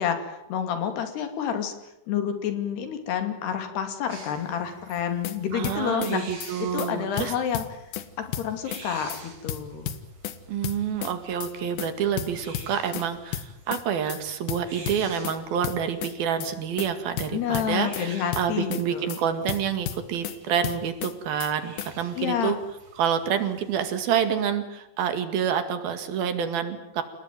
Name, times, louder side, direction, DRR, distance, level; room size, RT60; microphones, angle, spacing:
voice 1, 0.0-1.7 2.1-6.2 6.6-7.8 8.2-9.9 17.3-19.1 22.2-22.5, left 8 dB, 90° left, 7 dB, 4.7 m, -29 dB
sound 1, 4.1-24.0, right 3 dB, 40° right, 5.2 m, -49 dB
sound 2, 5.0-5.4 5.6-6.1 6.4-6.5 6.8-6.9 7.2-8.1 8.3-8.8 9.1-9.2 9.5-10.4 10.6-11.1 11.4-11.5 11.8-11.9 12.2-13.1 13.3-13.8 14.1-14.2 14.5-15.4 15.6-16.1 16.4-16.5 16.8-16.9 17.2-18.1 18.3-18.8 19.1-19.2 19.5-20.4 20.6-21.1 21.4-21.5 21.8-21.9, left 10 dB, 70° left, 3.1 m, -33 dB
voice 2, 5.5-7.3 10.5-22.6 23.0-27.0, right 8 dB, 70° right, 9 dB, 3.8 m, -28 dB
29.5 x 18.5 x 9.3 m, 0.86 s
omnidirectional pair, 4.5 m